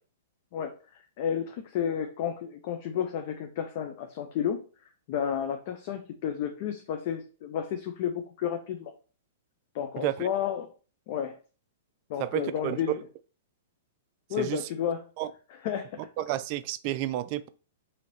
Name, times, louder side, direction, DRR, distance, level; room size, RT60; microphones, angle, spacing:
voice 1, 1.2-4.6 5.1-8.9 9.7-10.7 11.1-11.4 12.1-12.9 14.3-15.0 15.6-15.9, left 9 dB, 50° left, 0.5 m, -31 dB
voice 2, 10.0-10.3 12.2-12.8 14.4-14.6 15.2-15.3 16.2-17.5, right 14 dB, 45° right, 0.3 m, -31 dB
3.1 x 2.8 x 4.0 m
hypercardioid pair, 135°, 0 cm